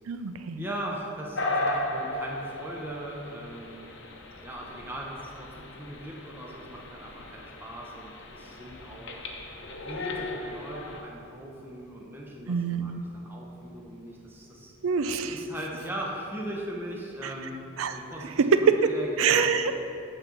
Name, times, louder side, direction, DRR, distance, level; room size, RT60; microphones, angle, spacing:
voice 1, 0.1-0.7 12.5-13.0 14.8-15.4 17.2-17.3 17.8-18.0 18.4-18.8 19.2-19.8, right 6 dB, 85° right, 9 dB, 0.5 m, -25 dB
voice 2, 0.6-3.9 4.4-9.1 9.8-14.7 15.3-17.6 17.9-18.4 18.8-19.5, right 1 dB, 10° right, -2 dB, 0.9 m, -39 dB
sound 1, 1.3-11.0, left 1 dB, 55° left, 0.8 m, -36 dB
8.9 x 3.9 x 7.0 m, 2.9 s
head